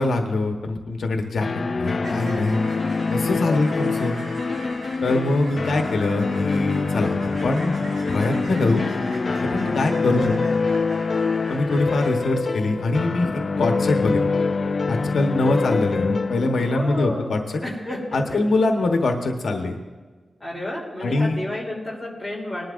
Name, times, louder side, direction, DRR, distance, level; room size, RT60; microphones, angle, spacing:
voice 1, 0.0-1.5 1.7-2.7 3.1-4.1 5.0-7.1 7.4-7.8 8.1-8.8 9.4-10.3 11.5-14.2 14.9-17.6 18.1-19.8 21.0-21.4, left 2 dB, 75° left, 3 dB, 1.1 m, -23 dB
sound 1, 1.4-18.1, left 4 dB, 40° left, 0.3 m, -25 dB
sound 2, 2.0-12.1, right 1 dB, 65° right, 4.6 m, -41 dB
voice 2, 16.7-17.3 17.6-18.4 20.4-22.7, left 1 dB, ahead, -3 dB, 3.2 m, -31 dB
20.0 x 12.0 x 2.6 m, 1.4 s
wide cardioid pair, 155°, 0 cm